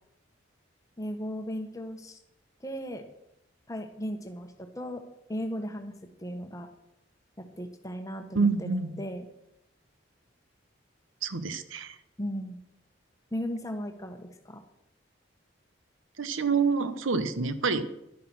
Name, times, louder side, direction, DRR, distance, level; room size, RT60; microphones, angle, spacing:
voice 1, 1.0-2.2 2.6-3.0 3.7-5.0 5.3-5.9 6.2-6.7 7.4-9.2 12.2-12.6 13.3-14.6, equal, 15° left, 6 dB, 1.2 m, -36 dB
voice 2, 8.3-8.9 11.2-11.9 16.2-17.9, right 4 dB, 85° right, 12 dB, 1.0 m, -27 dB
11.0 x 9.6 x 6.1 m, 0.82 s
head